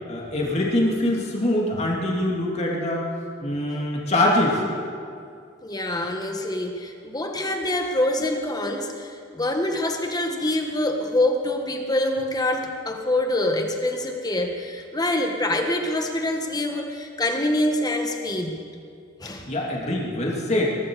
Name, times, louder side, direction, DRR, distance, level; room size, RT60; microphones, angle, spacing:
voice 1, 0.1-3.0 3.4-4.6 19.5-20.8, left 1 dB, 35° left, -2 dB, 2.8 m, -23 dB
voice 2, 5.6-18.6 19.2-19.5, left 1 dB, 20° left, 4 dB, 1.4 m, -25 dB
22.5 x 12.0 x 4.8 m, 2.3 s
head